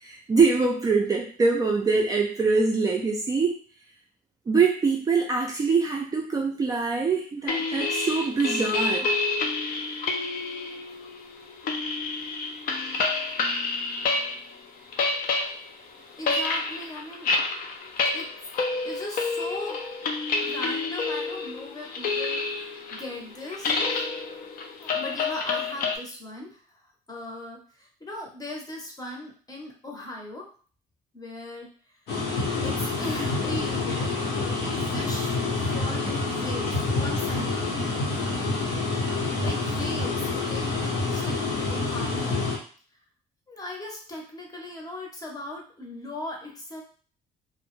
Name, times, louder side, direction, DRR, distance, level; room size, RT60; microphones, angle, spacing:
voice 1, 0.0-3.6 4.5-9.1, right 4 dB, 20° right, -1 dB, 0.4 m, -24 dB
sound 1, 7.5-14.5 14.8-26.0, left 3 dB, 60° left, 0.5 m, -29 dB
voice 2, 16.2-17.4 18.1-18.5 18.8-19.8 20.4-24.1 24.8-26.8 27.1-30.5 31.1-32.0 32.6-37.7 39.4-42.4 43.5-46.8, left 1 dB, 20° left, 0 dB, 0.7 m, -38 dB
sound 2, 32.1-42.6, left 3 dB, 85° left, 0.9 m, -27 dB
2.2 x 2.0 x 3.0 m, 0.42 s
cardioid pair, 110°, 17 cm